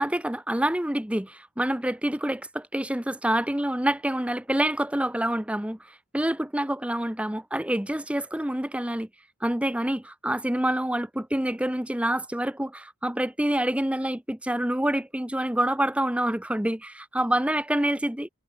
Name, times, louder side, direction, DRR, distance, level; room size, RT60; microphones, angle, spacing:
voice 1, 0.0-5.8 6.1-9.1 9.4-18.3, right 1 dB, 5° right, 0.9 m, -27 dB
head